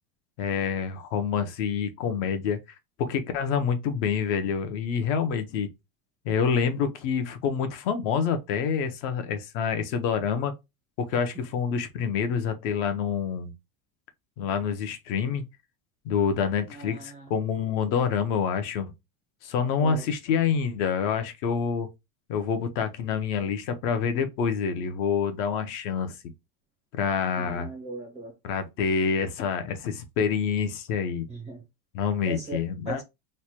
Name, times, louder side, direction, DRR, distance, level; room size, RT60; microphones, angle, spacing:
voice 1, 0.4-2.6 3.0-5.7 6.3-10.5 11.0-13.5 14.4-15.5 16.0-18.9 19.4-21.9 22.3-26.2 27.0-27.7 28.4-31.3 31.9-33.0, left 6 dB, 50° left, 0.7 m, -27 dB
voice 2, 16.7-17.3 19.8-20.1 27.4-28.3 31.3-31.6 32.3-33.0, right 2 dB, 15° right, 0.4 m, -38 dB
3.2 x 2.1 x 4.2 m
cardioid pair, 175°, 48 cm